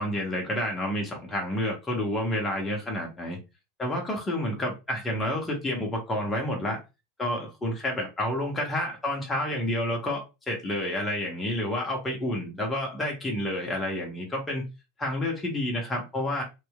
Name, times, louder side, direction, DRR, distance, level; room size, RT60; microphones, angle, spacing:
voice 1, 0.0-3.4 3.8-6.8 7.2-14.6 15.0-16.4, left 1 dB, 15° left, 0.8 m, -29 dB
2.8 x 2.3 x 2.2 m
figure-of-eight pair, 85°, 0 cm